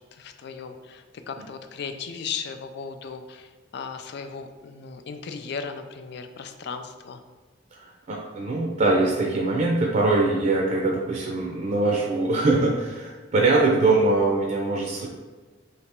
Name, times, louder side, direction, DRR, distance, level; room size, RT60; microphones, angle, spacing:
voice 1, 0.1-7.2, left 5 dB, 60° left, 7 dB, 0.4 m, -36 dB
voice 2, 7.8-15.1, right 2 dB, 45° right, -2 dB, 0.5 m, -22 dB
3.3 x 2.8 x 4.3 m, 1.3 s
head